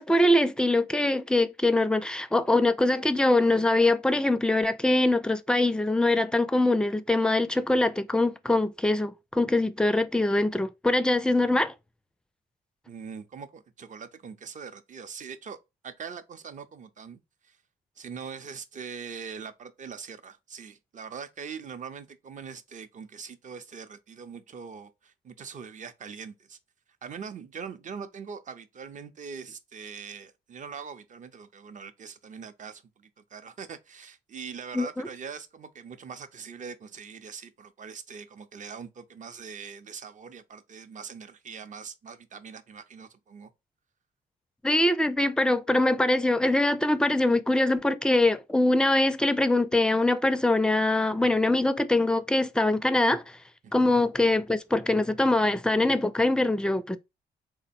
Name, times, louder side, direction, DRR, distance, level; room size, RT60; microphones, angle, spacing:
voice 1, 0.0-11.7 34.7-35.1 44.6-53.4 53.7-57.0, left 2 dB, 5° left, 0.4 m, -23 dB
voice 2, 12.9-15.6 15.8-17.6 18.0-26.6 27.0-43.5 53.6-54.0, right 6 dB, 45° right, 0.6 m, -42 dB
3.6 x 2.1 x 4.1 m
cardioid pair, 75°, 18 cm